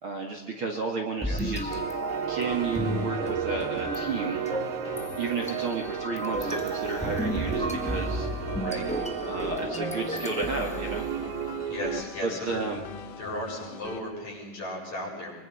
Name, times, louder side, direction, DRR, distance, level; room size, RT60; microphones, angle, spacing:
voice 1, 0.0-1.8 2.3-4.4 5.2-8.3 9.3-11.1 12.2-12.8, right 4 dB, 45° right, 2 dB, 2.3 m, -32 dB
sound 1, 1.2-11.5, equal, 10° left, 0.4 m, -33 dB
sound 2, 1.7-12.0, right 11 dB, 70° right, 1.9 m, -34 dB
sound 3, 2.4-14.0, left 7 dB, 70° left, 3.1 m, -43 dB
voice 2, 8.6-8.9 11.7-12.6 13.2-15.4, left 1 dB, 50° left, -3 dB, 8.6 m, -36 dB
24.5 x 23.5 x 5.7 m, 1.0 s
omnidirectional pair, 4.0 m